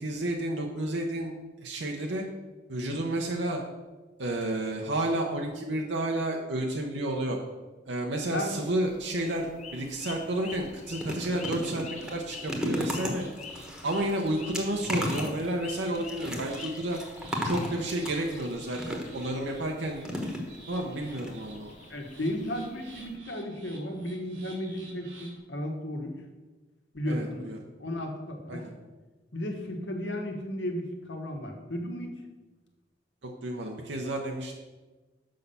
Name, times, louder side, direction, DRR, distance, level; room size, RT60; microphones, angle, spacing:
voice 1, 0.0-1.3 1.6-2.2 2.7-3.6 4.2-7.4 7.8-11.8 12.1-13.2 13.8-17.0 17.4-20.0 20.7-21.7 27.1-27.6 28.5-28.7 33.4-34.5, right 1 dB, 70° right, 1 dB, 0.9 m, -31 dB
voice 2, 8.3-8.6 19.5-19.6 21.9-26.1 26.9-27.5 27.8-28.7 29.3-32.1, left 1 dB, 70° left, 3 dB, 1.4 m, -34 dB
sound 1, 8.8-23.2, left 5 dB, 40° left, 0.7 m, -48 dB
sound 2, 10.5-19.3 20.0-20.8 21.2-21.3 21.6-21.7, equal, 5° right, 1.2 m, -35 dB
sound 3, 11.8-25.4, right 2 dB, 90° right, 2.5 m, -52 dB
6.5 x 5.6 x 6.8 m, 1.2 s
head